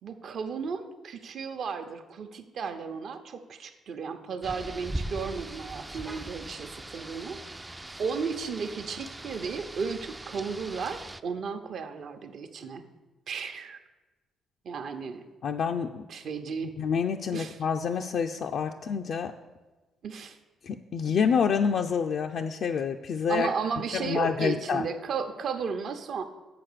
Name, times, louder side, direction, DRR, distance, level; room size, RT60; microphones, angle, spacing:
voice 1, 0.0-7.4 8.0-12.8 13.3-13.8 14.6-15.3 16.1-16.7 17.3-17.6 20.0-20.4 23.3-26.2, right 5 dB, 60° right, 7 dB, 0.8 m, -34 dB
Rain, 4.4-11.2, right 1 dB, 15° right, 0.3 m, -40 dB
voice 2, 15.4-16.1 16.8-19.3 20.6-23.5 23.9-24.9, left 6 dB, 60° left, 3 dB, 0.4 m, -27 dB
7.2 x 5.8 x 6.7 m, 1.2 s
cardioid pair, 90°, 0 cm